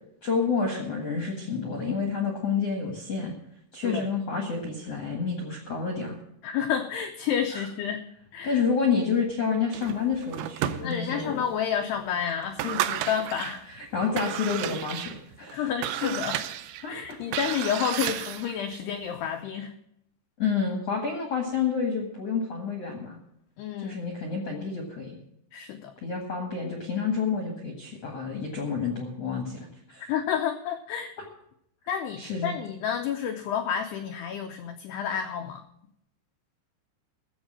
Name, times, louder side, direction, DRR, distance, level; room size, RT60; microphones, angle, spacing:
voice 1, 0.2-3.3 3.7-6.2 7.5-7.6 8.4-11.4 13.7-15.7 16.8-17.2 20.4-23.2 23.8-25.2 26.0-30.1 32.2-32.6, left 5 dB, 60° left, 1 dB, 1.6 m, -29 dB
voice 2, 6.4-8.0 8.3-8.6 10.8-13.6 15.5-16.3 16.9-19.7 23.6-24.0 25.5-25.9 30.1-31.1 31.9-35.6, left 8 dB, 85° left, 6 dB, 2.3 m, -30 dB
sound 1, 9.7-11.3 11.8-11.9 12.4-13.6 14.0-18.6, right 12 dB, 80° right, 2.7 m, -32 dB
14.5 x 7.2 x 7.5 m, 0.75 s
omnidirectional pair, 5.6 m